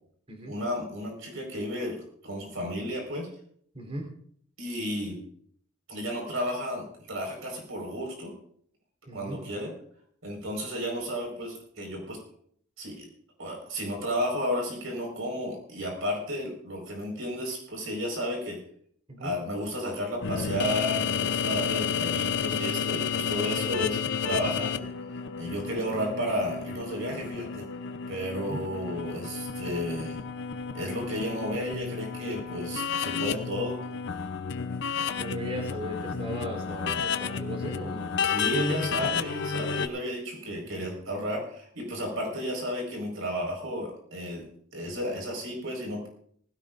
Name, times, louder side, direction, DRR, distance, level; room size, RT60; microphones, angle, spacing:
voice 1, 0.5-2.0 2.2-3.3 4.6-5.2 5.9-8.3 9.1-9.7 10.2-12.2 12.8-13.1 13.4-18.6 19.2-24.9 25.4-27.6 28.1-30.2 30.7-33.8 38.3-44.5 44.7-46.1, equal, 85° right, 0 dB, 4.8 m, -33 dB
voice 2, 3.7-4.1 9.1-9.4 19.1-19.3 28.5-28.6 35.2-38.4 39.0-39.1 40.5-40.8, right 1 dB, 30° right, 1 dB, 3.6 m, -37 dB
sound 1, 20.2-39.9, left 6 dB, 60° left, 0.6 m, -31 dB
19.0 x 16.0 x 2.5 m, 0.62 s
head